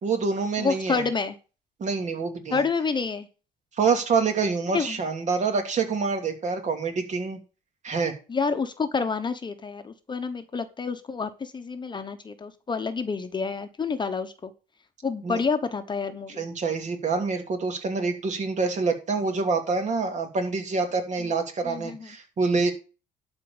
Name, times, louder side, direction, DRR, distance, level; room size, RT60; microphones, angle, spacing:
voice 1, 0.0-1.0 1.8-2.6 3.8-7.4 7.8-8.1 15.2-15.4 16.3-22.7, right 4 dB, 45° right, 5 dB, 2.9 m, -26 dB
voice 2, 0.6-1.3 2.5-3.3 4.7-5.0 8.3-14.5 15.0-16.4 21.6-22.1, left 5 dB, 25° left, 8 dB, 1.1 m, -28 dB
12.0 x 4.6 x 6.8 m, 0.34 s
cardioid pair, 110°, 17 cm